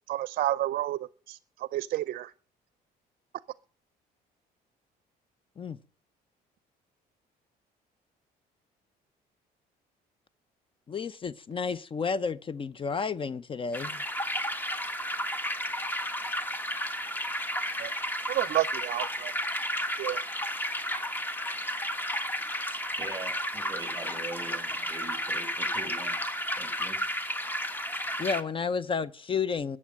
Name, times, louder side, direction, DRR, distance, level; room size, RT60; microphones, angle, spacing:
voice 1, 0.1-2.3 17.8-18.0 18.3-19.3 20.0-20.2, right 14 dB, 60° right, 0.5 m, -30 dB
voice 2, 10.9-14.0 28.2-29.8, left 5 dB, 30° left, 0.6 m, -31 dB
sound 1, 13.7-28.4, equal, 10° left, 1.4 m, -32 dB
voice 3, 23.0-26.2 26.6-27.0, right 3 dB, 20° right, 6.9 m, -42 dB
14.0 x 8.5 x 7.6 m
cardioid pair, 110°, 17 cm